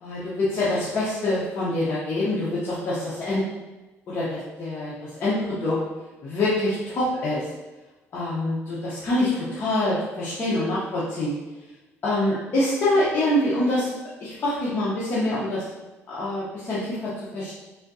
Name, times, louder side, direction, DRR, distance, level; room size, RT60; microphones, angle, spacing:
voice 1, 0.0-3.4 4.1-5.8 6.2-7.5 8.1-11.3 12.0-13.9 14.2-15.6 16.1-17.5, left 1 dB, 45° left, -9 dB, 0.7 m, -25 dB
3.5 x 2.6 x 2.6 m, 1.1 s
cardioid pair, 155°, 5 cm